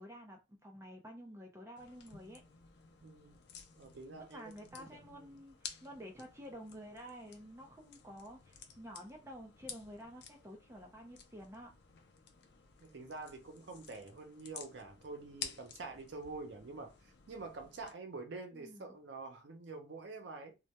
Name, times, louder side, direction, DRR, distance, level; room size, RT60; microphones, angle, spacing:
voice 1, 0.0-2.4 4.2-11.7 18.5-19.0, equal, 15° right, 0.4 m, -51 dB
sound 1, 1.8-17.9, left 7 dB, 65° left, 0.4 m, -53 dB
voice 2, 3.0-3.4 3.8-4.9 5.1-5.2 12.8-20.6, right 3 dB, 75° right, 0.5 m, -47 dB
2.2 x 2.1 x 2.8 m
head